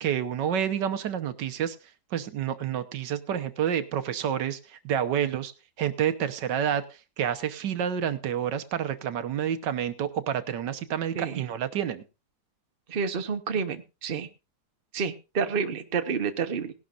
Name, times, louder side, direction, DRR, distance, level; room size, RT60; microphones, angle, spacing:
voice 1, 0.0-1.8 2.1-5.5 5.8-12.0, right 9 dB, 85° right, 11 dB, 1.6 m, -29 dB
voice 2, 12.9-14.3 14.9-16.7, right 5 dB, 35° right, 8 dB, 1.1 m, -29 dB
18.0 x 11.5 x 2.5 m, 0.28 s
omnidirectional pair, 1.8 m